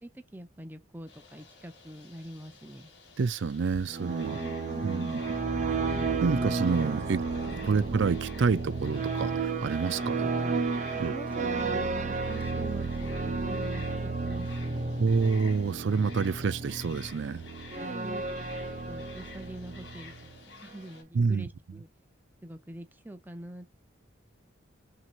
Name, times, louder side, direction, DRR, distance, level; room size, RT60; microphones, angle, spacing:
voice 1, 0.0-2.9 4.3-5.2 7.6-7.8 10.2-10.3 10.9-15.0 17.7-18.2 18.9-20.1 20.5-21.9 22.4-23.7, right 1 dB, 10° right, 0.6 m, -44 dB
sound 1, 1.1-21.0, left 4 dB, 60° left, 1.8 m, -51 dB
voice 2, 3.2-4.4 4.8-5.2 6.2-7.2 7.6-10.3 11.0-11.1 15.0-17.4 21.1-21.8, right 5 dB, 65° right, 0.4 m, -28 dB
sound 2, 3.7-20.4, right 4 dB, 35° right, 0.8 m, -32 dB
6.0 x 2.8 x 2.5 m
head